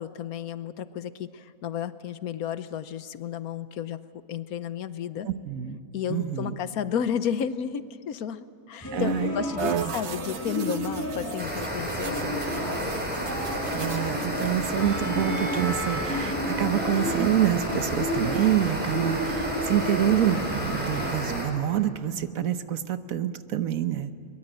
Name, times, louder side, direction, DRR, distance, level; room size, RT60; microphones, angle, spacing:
voice 1, 0.0-4.0 4.3-5.3 5.9-12.9 18.7-18.8, left 8 dB, 85° left, 13 dB, 1.3 m, -32 dB
voice 2, 5.2-5.8 6.1-6.6 8.9-9.3 9.8-9.9 13.7-24.1, right 11 dB, 70° right, 11 dB, 1.3 m, -27 dB
sound 1, 8.8-21.1, equal, 10° left, 5.5 m, -32 dB
sound 2, 9.6-15.0, right 6 dB, 55° right, 1.1 m, -36 dB
sound 3, 11.4-21.5, right 1 dB, 5° right, 5.0 m, -32 dB
22.0 x 22.0 x 9.0 m, 2.6 s
omnidirectional pair, 1.5 m